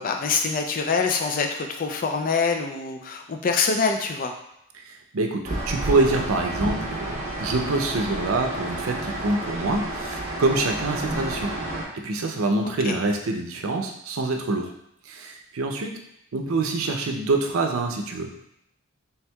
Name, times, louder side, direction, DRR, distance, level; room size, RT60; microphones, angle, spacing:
voice 1, 0.0-4.3 12.6-13.0, left 5 dB, 40° left, 4 dB, 0.4 m, -25 dB
voice 2, 4.9-11.5 12.0-14.7 15.1-15.9 16.3-18.3, right 2 dB, 80° right, 3 dB, 0.5 m, -25 dB
sound 1, 5.4-11.8, right 1 dB, 35° right, 0.9 m, -30 dB
4.4 x 3.4 x 2.3 m, 0.77 s
head